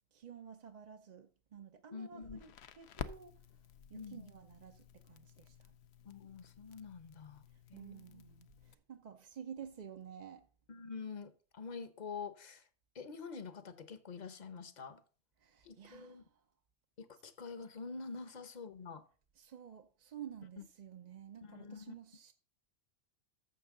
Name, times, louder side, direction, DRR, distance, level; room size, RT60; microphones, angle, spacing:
voice 1, 0.1-2.5 2.8-3.6 3.9-5.7 7.5-10.5 15.4-16.4 19.4-22.3, right 8 dB, 50° right, 0.7 m, -52 dB
voice 2, 1.9-2.4 3.9-4.3 6.0-7.4 7.7-8.2 10.7-12.6 12.9-15.0 15.6-16.2 17.0-19.0 20.6-20.7 21.4-21.9, left 5 dB, 45° left, 0.9 m, -47 dB
Crackle, 2.2-8.7, left 8 dB, 85° left, 0.9 m, -51 dB
14.0 x 6.6 x 3.7 m
omnidirectional pair, 1.1 m